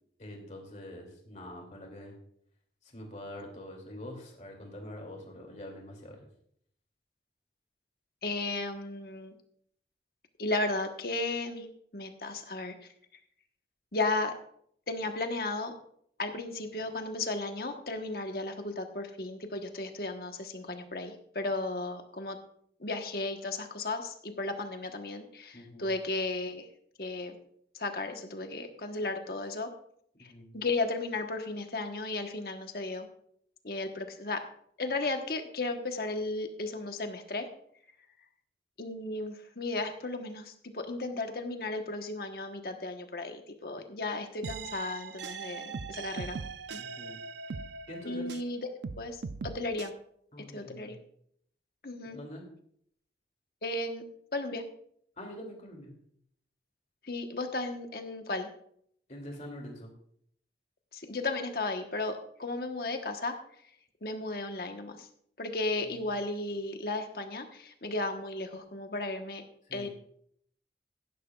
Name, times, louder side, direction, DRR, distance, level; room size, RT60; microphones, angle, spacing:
voice 1, 0.2-2.1 2.8-6.3 25.5-25.9 30.2-30.5 46.8-47.2 47.6-48.3 50.3-50.9 52.0-52.4 55.2-55.9 59.1-59.9 65.8-66.2 69.7-69.9, left 1 dB, 40° left, 1 dB, 2.6 m, -45 dB
voice 2, 8.2-9.3 10.4-11.7 11.9-12.7 13.9-14.3 14.9-15.7 16.2-22.4 22.8-26.7 27.0-27.3 27.7-29.7 30.2-33.1 33.6-34.4 34.8-37.5 38.8-46.4 46.7-46.8 48.0-48.7 49.0-49.9 50.5-51.0 51.8-52.2 53.6-54.0 54.3-54.6 57.0-58.5 60.9-63.3 64.0-65.1 65.4-69.4 69.7-69.9, left 2 dB, 55° left, 5 dB, 1.2 m, -34 dB
sound 1, 44.4-48.5 48.8-49.9, right 5 dB, 80° right, 0.5 m, -40 dB
16.0 x 11.0 x 2.4 m, 0.67 s
head